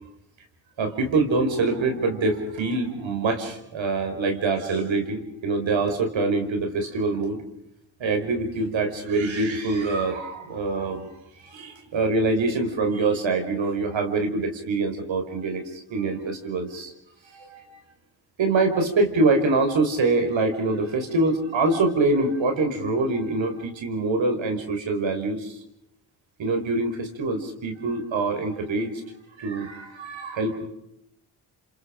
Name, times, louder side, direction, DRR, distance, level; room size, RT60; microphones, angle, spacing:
voice 1, 0.8-7.4 8.0-11.1 11.4-16.9 17.3-17.6 18.4-25.5 26.4-28.9 29.4-30.7, right 3 dB, 75° right, 5 dB, 4.9 m, -25 dB
29.0 x 27.5 x 5.1 m, 0.82 s
cardioid pair, 55°, 46 cm